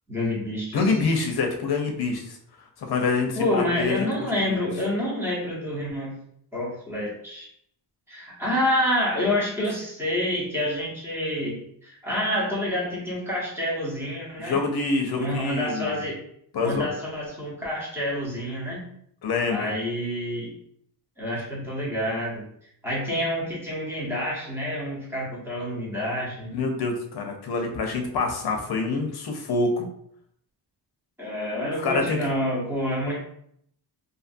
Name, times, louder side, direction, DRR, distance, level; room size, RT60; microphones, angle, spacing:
voice 1, 0.1-0.9 3.3-6.2 6.5-7.5 8.1-14.6 15.1-16.2 16.6-18.9 19.5-20.5 21.2-22.4 22.8-26.5 31.2-33.2, left 1 dB, 5° right, -6 dB, 0.9 m, -28 dB
voice 2, 0.7-2.4 2.8-4.1 4.4-4.6 14.4-16.0 16.5-16.9 19.2-19.7 26.4-29.9 31.8-32.2, left 3 dB, 60° left, 3 dB, 0.6 m, -26 dB
2.6 x 2.5 x 2.5 m, 0.69 s
wide cardioid pair, 135°, 43 cm